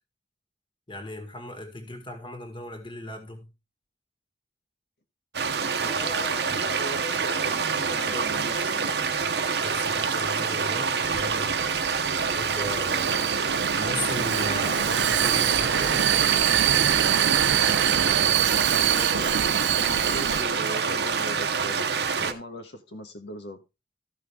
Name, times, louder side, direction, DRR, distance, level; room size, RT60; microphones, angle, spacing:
voice 1, 0.9-3.5 9.6-11.5 12.4-13.1 13.7-16.0, left 1 dB, 30° left, 2.0 m, -37 dB
sound 1, 5.3-22.3, right 5 dB, 65° right, 0.9 m, -26 dB
voice 2, 5.7-9.0 18.8-21.9 22.2-23.6, left 1 dB, 70° left, 1.3 m, -39 dB
Vehicle, 11.0-20.4, right 10 dB, 85° right, 0.4 m, -25 dB
14.0 x 5.9 x 3.5 m
head